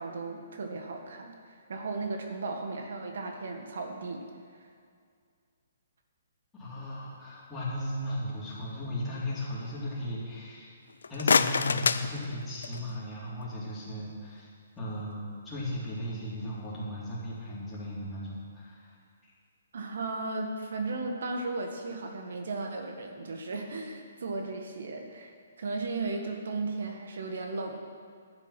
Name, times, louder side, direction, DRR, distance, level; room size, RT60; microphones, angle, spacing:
voice 1, 0.0-4.3 4.6-4.7 19.7-27.8, right 3 dB, 70° right, 4 dB, 1.6 m, -35 dB
voice 2, 6.6-10.7 11.1-14.5 14.8-18.9, left 1 dB, 10° left, -8 dB, 3.7 m, -36 dB
sound 1, 10.9-13.0, left 5 dB, 90° left, 0.5 m, -27 dB
11.5 x 9.8 x 5.9 m, 2.2 s
hypercardioid pair, 160°, 0 cm